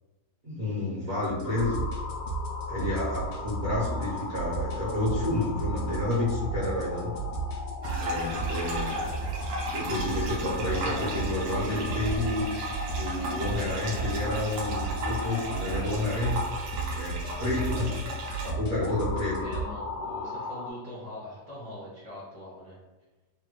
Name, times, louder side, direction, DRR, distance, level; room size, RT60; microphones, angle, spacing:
voice 1, 0.4-1.8 2.7-7.1 8.0-9.0 9.7-12.4 12.9-16.4 16.9-17.9 18.4-19.4, left 2 dB, 50° right, -9 dB, 0.7 m, -30 dB
sound 1, 1.2-19.6, right 3 dB, 70° left, 1.0 m, -35 dB
sound 2, 1.4-20.7, left 4 dB, 85° left, 1.3 m, -40 dB
sound 3, 7.8-18.5, right 1 dB, 80° right, 1.3 m, -35 dB
voice 2, 19.4-22.8, left 1 dB, 35° left, -9 dB, 0.6 m, -42 dB
3.4 x 2.2 x 2.9 m, 1.2 s
omnidirectional pair, 1.9 m